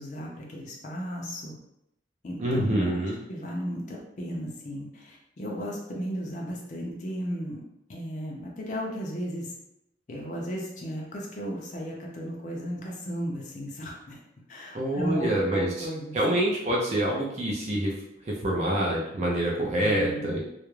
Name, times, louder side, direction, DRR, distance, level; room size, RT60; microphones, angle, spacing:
voice 1, 0.0-1.5 2.2-3.0 3.3-7.6 7.9-9.5 10.1-14.2 14.5-16.2 19.8-20.4, equal, 40° left, -2 dB, 0.4 m, -35 dB
voice 2, 2.4-3.2 14.7-15.9 16.1-17.9 18.2-20.4, right 1 dB, 35° right, -3 dB, 0.4 m, -26 dB
2.3 x 2.0 x 3.0 m, 0.83 s
head